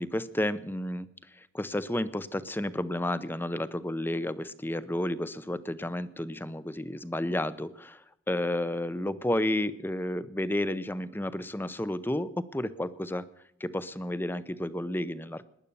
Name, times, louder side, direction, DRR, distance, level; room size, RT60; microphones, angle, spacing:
voice 1, 0.0-13.3 13.6-15.4, left 1 dB, 10° left, 15 dB, 0.6 m, -31 dB
19.0 x 10.5 x 6.9 m, 0.76 s
head